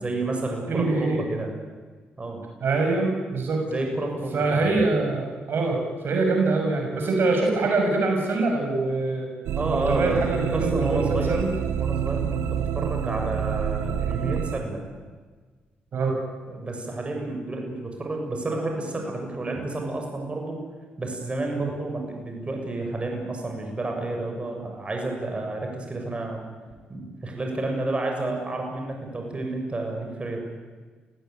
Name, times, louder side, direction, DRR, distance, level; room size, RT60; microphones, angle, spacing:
voice 1, 0.0-1.5 2.2-2.4 3.6-4.6 9.6-10.2 10.5-11.5 11.8-14.9 16.5-20.6 21.0-26.5 26.9-30.4, right 2 dB, 30° right, 2 dB, 7.1 m, -30 dB
voice 2, 0.7-1.2 2.6-3.6 4.3-9.3 9.7-11.5 15.9-16.2 21.5-21.7, right 3 dB, 65° right, 1 dB, 6.5 m, -24 dB
sound 1, 9.5-14.6, right 8 dB, 80° right, 1.4 m, -27 dB
29.0 x 17.0 x 9.3 m, 1.4 s
cardioid pair, 70°, 4 cm